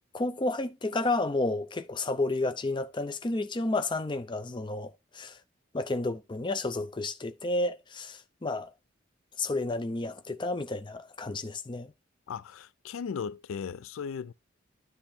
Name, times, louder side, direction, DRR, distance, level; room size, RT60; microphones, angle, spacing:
voice 1, 0.1-5.4 5.7-8.7 9.4-11.9, left 2 dB, 25° left, 0.5 m, -31 dB
voice 2, 12.3-14.3, left 6 dB, 85° left, 0.4 m, -37 dB
10.0 x 3.4 x 4.3 m
head